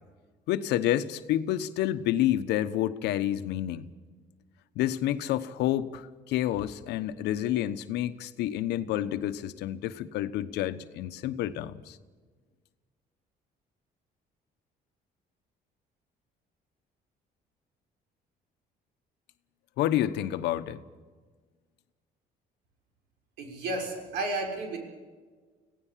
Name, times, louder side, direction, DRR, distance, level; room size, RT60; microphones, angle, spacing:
voice 1, 0.5-3.9 4.7-12.0 19.8-20.8, left 12 dB, 85° left, 12 dB, 1.1 m, -29 dB
voice 2, 23.4-24.8, right 2 dB, 85° right, 2 dB, 6.2 m, -32 dB
26.0 x 17.0 x 7.5 m, 1.4 s
cardioid pair, 110°, 17 cm